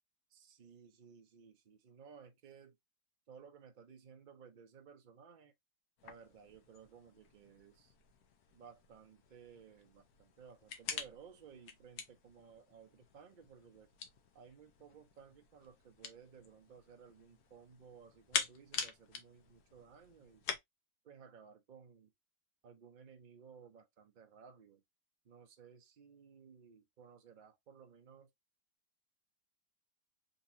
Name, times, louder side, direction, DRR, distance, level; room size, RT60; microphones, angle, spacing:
voice 1, 0.3-2.7 3.3-5.5 6.0-7.9 8.5-13.9 14.3-20.4 21.0-22.1 22.6-24.8 25.3-28.3, right 6 dB, 50° right, 0.5 m, -58 dB
sound 1, 6.0-20.6, left 6 dB, 70° left, 1.2 m, -46 dB
4.0 x 2.9 x 2.5 m
omnidirectional pair, 1.8 m